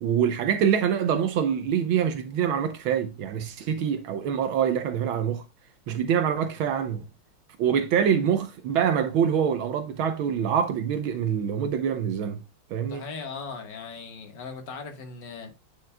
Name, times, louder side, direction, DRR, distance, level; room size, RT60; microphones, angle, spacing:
voice 1, 0.0-5.4 5.9-7.0 7.6-12.4 12.7-13.0, right 8 dB, 80° right, 1.6 m, -25 dB
voice 2, 12.9-15.5, left 5 dB, 60° left, 2.1 m, -38 dB
9.2 x 7.2 x 2.2 m
omnidirectional pair, 2.2 m